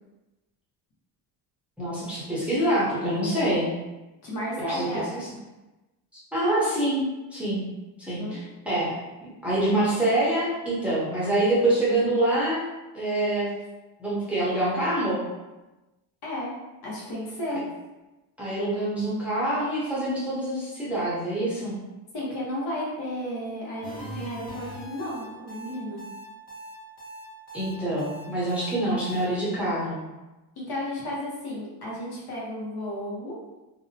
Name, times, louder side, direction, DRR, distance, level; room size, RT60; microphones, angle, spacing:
voice 1, 1.8-3.7 4.7-5.3 6.3-7.0 7.3-7.6 8.0-8.4 8.7-9.0 9.4-12.6 12.9-13.5 14.0-15.2 18.4-21.8 27.5-30.0, right 1 dB, 5° right, -9 dB, 0.6 m, -25 dB
voice 2, 4.2-5.1 8.2-8.4 16.2-16.5 16.8-17.6 22.1-26.0 30.6-33.3, equal, 70° left, -5 dB, 1.0 m, -33 dB
sound 1, 23.8-29.2, right 1 dB, 85° left, 1.3 m, -40 dB
2.6 x 2.1 x 2.7 m, 1.1 s
cardioid pair, 155°, 40 cm